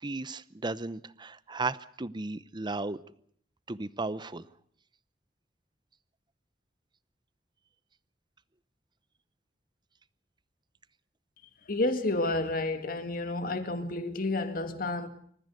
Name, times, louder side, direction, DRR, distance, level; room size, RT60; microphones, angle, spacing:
voice 1, 0.0-3.0 3.7-4.5, right 3 dB, 25° right, 0.8 m, -35 dB
voice 2, 11.7-15.1, left 2 dB, 50° left, 2.1 m, -30 dB
27.0 x 14.5 x 8.4 m
head